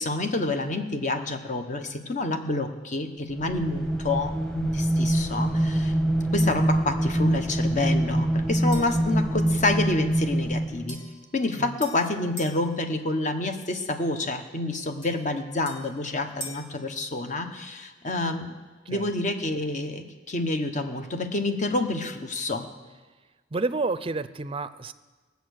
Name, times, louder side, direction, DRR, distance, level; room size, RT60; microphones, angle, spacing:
voice 1, 0.0-5.9 6.3-11.0 11.3-18.5 18.9-22.7, left 2 dB, 45° left, 6 dB, 1.1 m, -28 dB
sound 1, 3.3-11.0, right 1 dB, 5° left, 1.1 m, -25 dB
sound 2, 8.7-9.1 10.9-12.6 15.0-16.7, equal, 30° left, 2.0 m, -43 dB
voice 2, 23.5-24.9, right 3 dB, 30° right, 13 dB, 0.5 m, -30 dB
19.0 x 8.2 x 6.5 m, 1.3 s
head